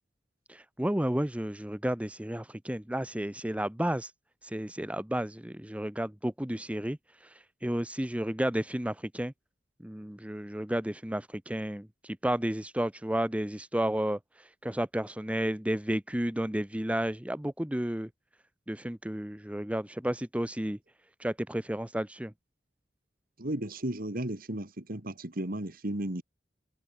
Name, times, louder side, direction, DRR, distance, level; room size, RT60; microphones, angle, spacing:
voice 1, 0.5-4.1 4.4-9.3 9.8-18.1 18.7-20.8 21.2-22.3, right 1 dB, 5° right, 0.8 m, -32 dB
voice 2, 23.4-26.2, right 1 dB, 50° right, 2.5 m, -34 dB
head